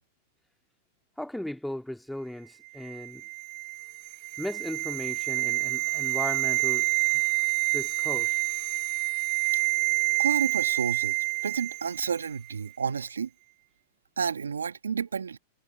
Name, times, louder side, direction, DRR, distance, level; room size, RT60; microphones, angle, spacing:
voice 1, 1.2-3.2 4.4-6.9 7.7-8.4, left 1 dB, 5° left, 2.3 m, -36 dB
sound 1, 2.8-12.1 12.3-12.5, right 27 dB, 55° right, 1.3 m, -28 dB
voice 2, 10.2-11.2 11.4-13.3 14.2-15.4, right 6 dB, 85° right, 1.4 m, -30 dB
hypercardioid pair, 100°, 0 cm